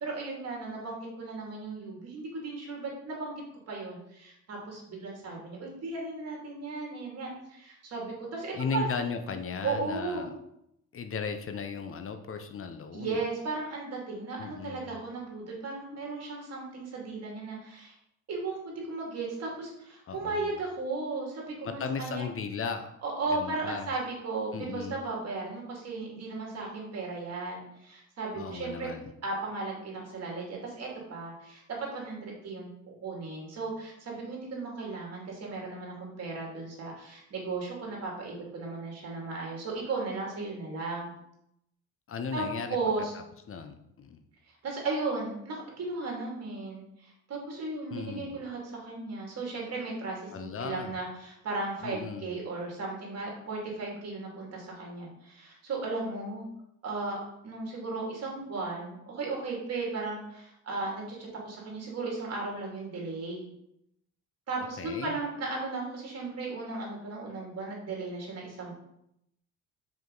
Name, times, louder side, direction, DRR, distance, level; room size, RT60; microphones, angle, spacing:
voice 1, 0.0-8.8 9.6-10.3 12.9-17.9 18.3-22.3 23.0-28.9 29.2-41.1 42.3-43.1 44.6-56.5 56.8-63.4 64.5-68.7, right 3 dB, 55° right, -2 dB, 2.3 m, -36 dB
voice 2, 8.5-10.3 10.9-13.2 14.4-15.0 20.1-20.4 21.6-22.9 23.3-23.9 24.5-25.0 28.4-29.1 42.1-42.8 43.5-44.2 47.9-48.3 50.3-50.9 51.8-52.3 64.8-65.2, left 5 dB, 45° left, 7 dB, 0.7 m, -36 dB
5.4 x 4.9 x 3.9 m, 0.78 s
cardioid pair, 90°, 30 cm